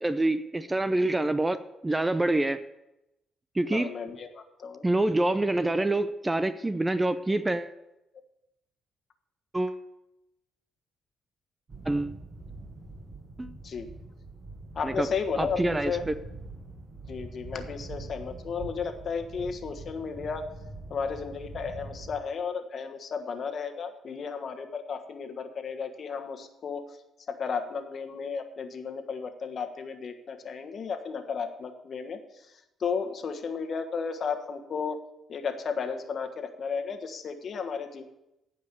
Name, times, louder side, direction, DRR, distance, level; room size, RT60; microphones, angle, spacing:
voice 1, 0.0-2.6 3.5-3.9 4.8-7.7 9.5-9.8 11.9-12.2 13.4-13.5 14.8-15.1 15.4-16.1, right 2 dB, 15° right, 12 dB, 0.6 m, -26 dB
voice 2, 3.7-4.8 13.6-13.9 14.7-16.1 17.1-20.5 20.9-27.0 27.3-35.0 35.3-38.0, left 5 dB, 55° left, 7 dB, 1.4 m, -34 dB
sound 1, 11.7-22.2, right 3 dB, 45° right, 5.6 m, -43 dB
15.5 x 5.5 x 6.8 m, 0.90 s
cardioid pair, 90°, 0 cm